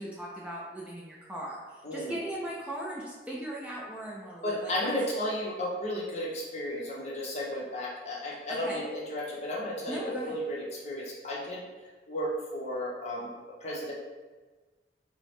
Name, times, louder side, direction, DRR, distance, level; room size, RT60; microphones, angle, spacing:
voice 1, 0.0-1.6 1.9-4.9 8.5-8.8 9.9-10.4, right 1 dB, 5° right, -5 dB, 0.4 m, -38 dB
voice 2, 1.8-2.2 4.4-11.6 12.1-13.3 13.6-13.9, left 1 dB, 40° left, -4 dB, 0.8 m, -33 dB
4.5 x 2.0 x 3.2 m, 1.3 s
head